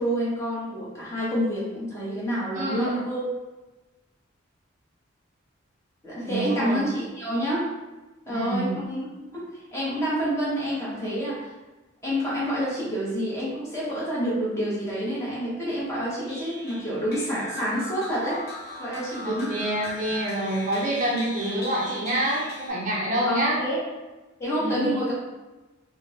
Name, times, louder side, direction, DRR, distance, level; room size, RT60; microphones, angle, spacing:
voice 1, 0.0-3.3 6.0-7.7 8.3-9.1 9.3-11.5 12.0-18.4 18.8-19.5 23.2-23.8 24.4-25.1, equal, 15° left, -8 dB, 0.9 m, -28 dB
voice 2, 2.5-3.0 6.2-6.9 8.3-8.7 19.2-23.6 24.6-24.9, right 1 dB, 35° right, -5 dB, 0.5 m, -27 dB
sound 1, 16.3-22.7, equal, 50° left, 0.7 m, -39 dB
3.3 x 2.0 x 2.7 m, 1.1 s
head